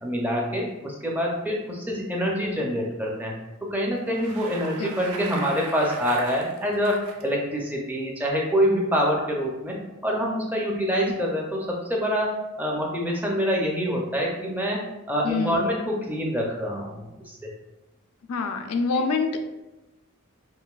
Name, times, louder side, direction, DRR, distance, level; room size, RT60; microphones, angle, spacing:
voice 1, 0.0-3.3 3.6-12.3 12.6-14.8 15.1-17.5, equal, 10° right, -1 dB, 0.5 m, -26 dB
Bicycle, 3.9-7.2, right 4 dB, 80° right, 0.5 m, -38 dB
voice 2, 15.2-15.7 18.3-19.4, left 4 dB, 80° left, 5 dB, 0.4 m, -26 dB
5.4 x 2.6 x 2.3 m, 1.0 s
head